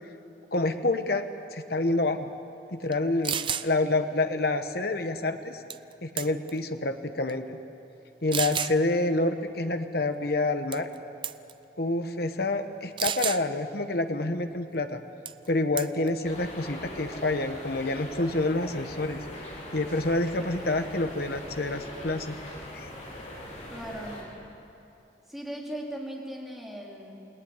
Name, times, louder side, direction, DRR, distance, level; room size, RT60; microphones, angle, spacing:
voice 1, 0.5-1.2 1.5-2.3 2.7-5.6 6.0-7.6 8.2-10.9 11.8-15.0 15.5-19.2 19.7-22.4 22.7-22.9, left 2 dB, 55° left, 7 dB, 1.3 m, -28 dB
sound 1, 2.9-3.0 3.2-3.7 5.7-5.9 6.2-6.6 7.3-7.4 8.3-8.8 10.7-11.0 11.2-11.5 13.0-13.4 15.3-15.5 15.8-16.1, right 8 dB, 25° right, 0.6 m, -30 dB
sound 2, 16.2-24.2, left 1 dB, 40° left, 6.2 m, -41 dB
voice 2, 23.7-24.2 25.3-27.1, right 1 dB, ahead, -3 dB, 4.2 m, -38 dB
28.5 x 19.5 x 9.9 m, 2.8 s
head